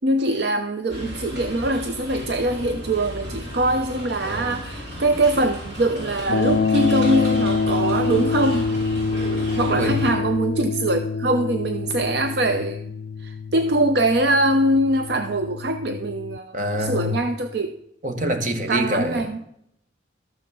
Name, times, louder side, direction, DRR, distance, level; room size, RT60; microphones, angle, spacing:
voice 1, 0.0-8.7 9.6-12.8 13.2-17.8 18.7-19.4, right 1 dB, 60° right, 0.6 m, -23 dB
sound 1, 0.9-10.1, equal, 80° right, 6.1 m, -35 dB
sound 2, 6.3-16.4, left 4 dB, 50° left, 0.4 m, -26 dB
voice 2, 16.5-17.2 18.0-19.2, equal, 40° right, 1.3 m, -25 dB
13.5 x 6.2 x 6.9 m
head